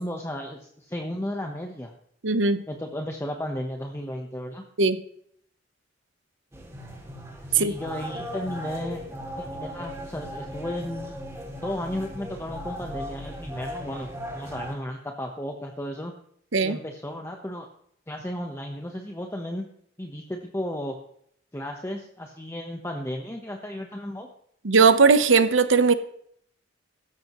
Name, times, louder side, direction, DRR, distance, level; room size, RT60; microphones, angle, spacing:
voice 1, 0.0-1.9 2.7-4.6 7.5-9.0 9.4-11.1 11.5-16.1 16.6-17.7 18.1-19.7 20.0-21.0 21.5-24.3, left 1 dB, 15° left, 2 dB, 1.1 m, -34 dB
voice 2, 2.2-2.6 4.8-5.0 7.5-7.7 16.5-16.8 24.6-25.9, right 4 dB, 80° right, 11 dB, 1.0 m, -19 dB
sound 1, 6.5-14.7, equal, 15° right, 2.7 m, -37 dB
16.5 x 13.5 x 3.1 m, 0.68 s
head